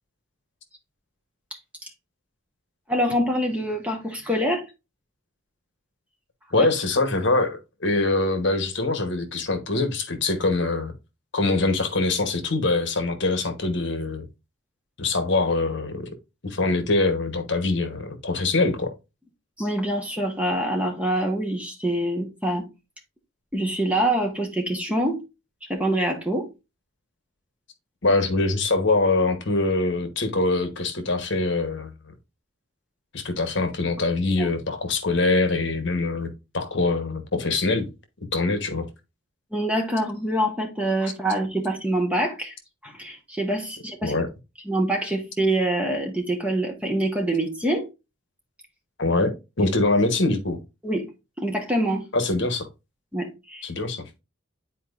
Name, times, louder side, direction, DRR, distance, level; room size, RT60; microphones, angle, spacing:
voice 1, 2.9-4.7 6.6-6.7 19.6-22.7 23.5-25.2 25.7-26.5 34.4-34.5 39.5-42.5 42.8-44.1 44.7-47.9 49.6-49.7 50.8-51.1 51.4-52.1 53.1-53.7, right 1 dB, 5° right, 1.2 m, -25 dB
voice 2, 6.5-10.9 11.3-14.3 15.0-16.1 16.4-18.9 28.0-32.1 33.1-37.9 38.3-38.9 44.0-44.3 49.0-50.6 52.1-52.7 53.6-54.0, left 3 dB, 55° left, 1.2 m, -24 dB
10.0 x 4.4 x 2.5 m
head